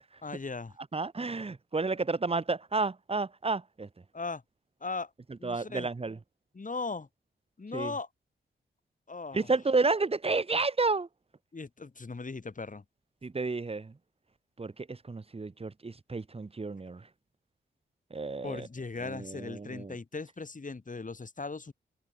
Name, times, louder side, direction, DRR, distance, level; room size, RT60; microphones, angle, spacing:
voice 1, 0.2-0.8 4.1-4.4 4.8-5.1 5.4-5.9 6.5-7.1 7.6-8.1 9.1-9.5 11.5-12.8 18.4-21.7, left 4 dB, 40° left, 7.7 m, -38 dB
voice 2, 0.9-3.9 5.4-6.2 7.7-7.9 9.3-11.1 13.2-13.9 14.6-17.0 18.1-18.7 19.0-19.9, right 3 dB, 30° right, 1.1 m, -31 dB
cardioid pair, 55°, 19 cm